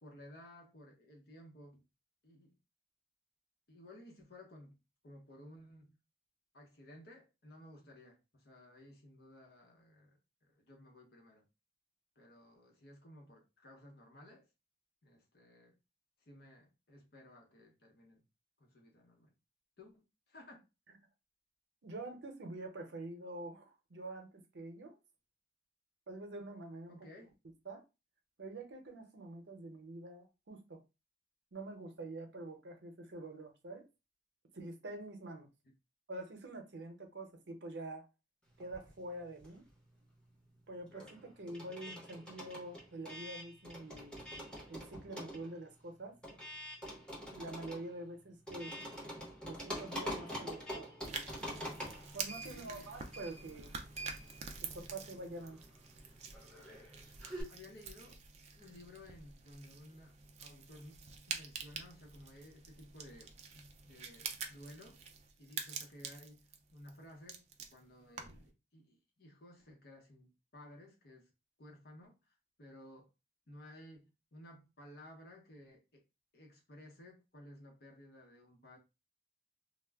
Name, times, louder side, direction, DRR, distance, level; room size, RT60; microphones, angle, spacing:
voice 1, 0.0-1.8 2.2-2.5 3.7-4.8 5.0-6.0 6.5-11.4 12.2-14.5 15.0-15.8 16.2-18.2 18.6-19.3 19.8-20.6 26.9-27.3 52.4-52.9 57.5-58.2 58.5-65.0 65.4-67.4 67.7-71.3 71.6-73.1 73.5-76.0 76.3-78.8, left 1 dB, 60° left, 0.8 m, -56 dB
voice 2, 21.8-24.3 24.5-25.0 26.1-27.0 27.7-27.8 28.4-30.8 31.5-33.9 34.5-35.5 36.1-38.1 38.6-39.6 40.7-44.2 44.7-46.1 47.3-48.7 49.4-50.9 52.1-53.8 54.6-55.6, right 2 dB, 85° right, 0.7 m, -46 dB
sound 1, 38.6-39.9 40.1-57.4, equal, 5° left, 0.9 m, -46 dB
sound 2, 51.0-68.5, right 5 dB, 40° right, 0.4 m, -47 dB
2.2 x 2.0 x 3.4 m
head